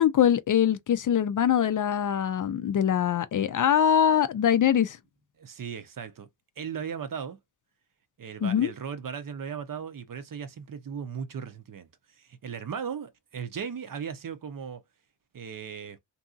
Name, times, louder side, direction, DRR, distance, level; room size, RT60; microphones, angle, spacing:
voice 1, 0.0-5.0 8.4-8.7, left 9 dB, 50° left, 0.4 m, -23 dB
voice 2, 5.4-6.3 6.6-7.4 8.2-14.8 15.3-16.0, right 7 dB, 50° right, 0.7 m, -37 dB
2.7 x 2.6 x 2.3 m
cardioid pair, 60°, 43 cm